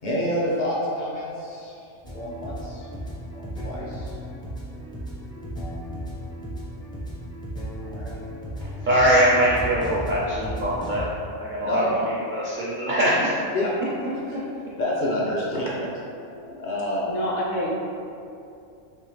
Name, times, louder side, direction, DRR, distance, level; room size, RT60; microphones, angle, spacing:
voice 1, 0.0-1.8 2.1-2.9 3.3-4.2 7.8-8.1 11.6-11.9 13.5-13.7 14.3-14.4 14.8-17.2, left 1 dB, 50° left, -6 dB, 0.7 m, -28 dB
sound 1, 2.0-11.0, equal, 5° left, 0.4 m, -35 dB
voice 2, 8.8-11.0 11.4-13.3, equal, 60° right, -7 dB, 0.5 m, -22 dB
voice 3, 17.1-17.7, equal, 75° left, -4 dB, 1.1 m, -27 dB
3.4 x 2.9 x 3.2 m, 2.6 s
omnidirectional pair, 1.3 m